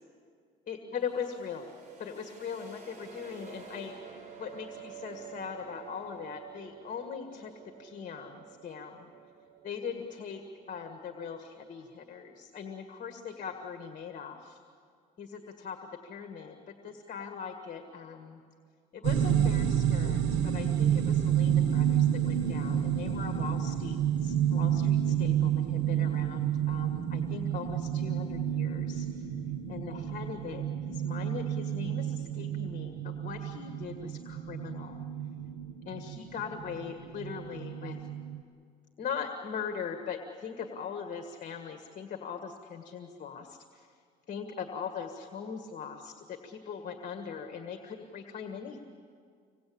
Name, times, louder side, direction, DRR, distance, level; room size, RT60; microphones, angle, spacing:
voice 1, 0.7-1.7 2.0-4.0 4.4-7.5 7.8-9.1 9.6-10.4 10.7-14.6 15.2-16.6 16.8-18.4 18.9-29.3 29.7-35.0 35.9-38.0 39.0-43.9 44.3-48.8, left 6 dB, 50° left, 5 dB, 1.8 m, -40 dB
sound 1, 1.0-12.6, right 7 dB, 45° right, 4.4 m, -50 dB
sound 2, 19.0-38.4, right 9 dB, 85° right, 1.3 m, -30 dB
26.0 x 19.0 x 8.7 m, 2.2 s
cardioid pair, 110°, 17 cm